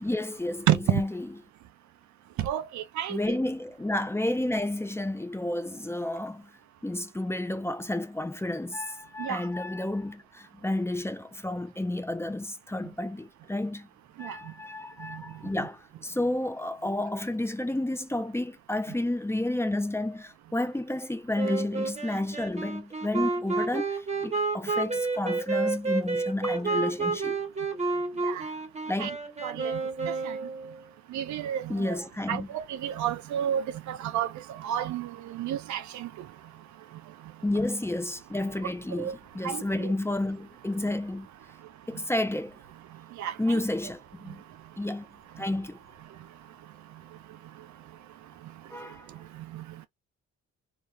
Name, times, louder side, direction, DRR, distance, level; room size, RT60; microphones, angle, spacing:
voice 1, 0.0-1.3 3.1-6.5 6.8-13.9 14.2-27.4 28.9-29.2 31.7-32.5 37.4-41.3 41.9-42.6 43.4-44.4 44.8-45.1 45.4-45.8 48.7-49.1, left 1 dB, 10° left, 0.5 m, -31 dB
voice 2, 0.7-1.0 2.4-3.2 9.2-9.4 14.2-14.3 15.1-15.2 28.2-28.5 29.0-29.1 29.4-30.4 31.1-32.0 32.3-36.1 39.0-39.2 39.4-39.9 43.2-43.6 49.5-49.6, right 11 dB, 70° right, 0.5 m, -31 dB
Wind instrument woodwind instrument, 21.4-30.8, right 3 dB, 20° right, 1.2 m, -30 dB
2.4 x 2.3 x 3.1 m
cardioid pair, 90°, 30 cm